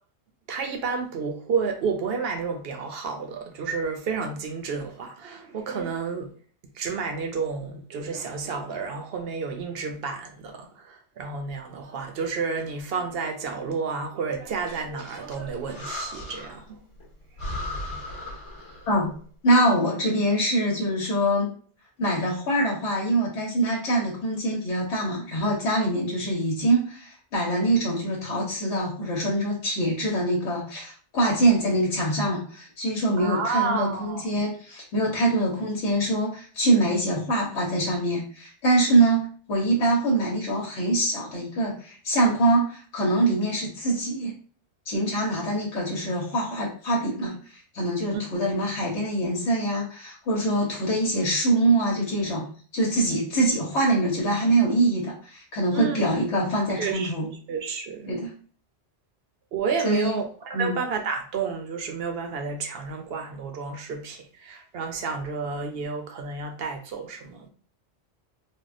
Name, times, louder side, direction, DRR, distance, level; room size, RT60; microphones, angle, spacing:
voice 1, 0.5-6.3 6.7-16.8 17.7-17.8 33.2-34.3 35.3-35.4 48.1-48.2 55.7-56.0 56.7-58.1 59.5-67.5, right 5 dB, 65° right, 0.8 m, -31 dB
Breathing, 14.5-16.7 17.0-17.1 17.4-19.0, left 1 dB, 30° left, 0.9 m, -37 dB
voice 2, 19.4-21.5 22.0-44.3 44.9-47.4 47.7-52.5 52.7-57.2 58.1-58.3 59.8-60.2 60.5-60.8, right 1 dB, 85° left, 1.1 m, -24 dB
3.4 x 2.2 x 2.5 m
omnidirectional pair, 1.2 m